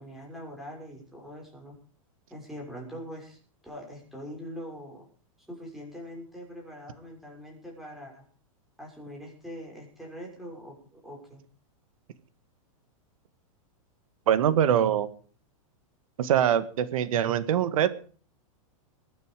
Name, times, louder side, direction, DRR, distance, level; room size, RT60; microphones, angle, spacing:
voice 1, 0.0-1.7 2.3-5.0 5.5-8.2 8.8-11.4, equal, ahead, -2 dB, 6.4 m, -43 dB
voice 2, 14.3-15.1 16.2-17.9, right 10 dB, 75° right, 14 dB, 1.7 m, -23 dB
22.0 x 9.6 x 5.0 m, 0.41 s
supercardioid pair, 145°, 18 cm